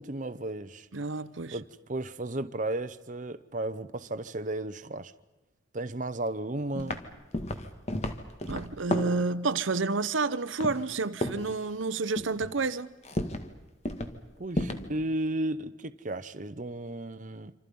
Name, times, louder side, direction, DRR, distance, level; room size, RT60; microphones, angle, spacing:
voice 1, 0.0-0.9 1.5-5.1 5.7-7.0 14.4-17.5, right 1 dB, 40° right, 0.9 m, -34 dB
voice 2, 0.9-1.6 8.5-12.9, right 3 dB, 85° right, 0.9 m, -30 dB
sound 1, 6.8-7.1 7.3-9.2 10.6-11.0 11.2-11.5 12.2-12.5 13.0-13.5 13.8-14.2 14.5-14.9, left 1 dB, 35° left, 1.8 m, -32 dB
27.0 x 27.0 x 5.5 m
head